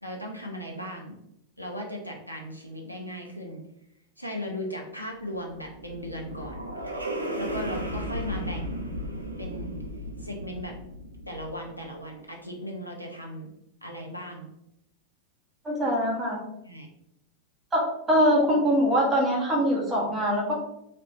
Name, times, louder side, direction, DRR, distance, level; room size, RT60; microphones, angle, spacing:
voice 1, 0.0-1.2 1.6-3.6 4.2-6.7 7.4-8.8 9.4-9.8 10.2-10.7 11.3-13.5 13.8-14.5 16.6-16.9, equal, 90° left, 0 dB, 0.5 m, -37 dB
sound 1, 5.3-11.8, equal, 80° right, 0.5 m, -35 dB
voice 2, 15.6-16.4 17.7-20.5, equal, 15° right, -4 dB, 1.2 m, -23 dB
3.3 x 2.9 x 2.7 m, 0.80 s
figure-of-eight pair, 90°, 0 cm